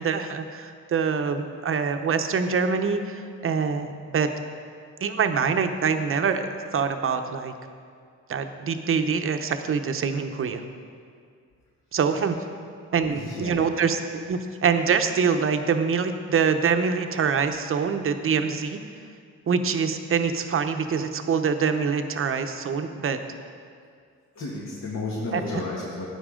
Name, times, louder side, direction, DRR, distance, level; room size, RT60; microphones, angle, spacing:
voice 1, 0.0-4.3 5.0-7.5 8.3-10.6 11.9-12.4 12.9-18.8 19.5-23.2 25.3-25.4, right 6 dB, 45° right, 7 dB, 0.8 m, -25 dB
voice 2, 12.8-13.6 24.4-26.1, left 2 dB, 60° left, -6 dB, 2.1 m, -33 dB
12.5 x 9.8 x 3.8 m, 2.2 s
cardioid pair, 90°, 30 cm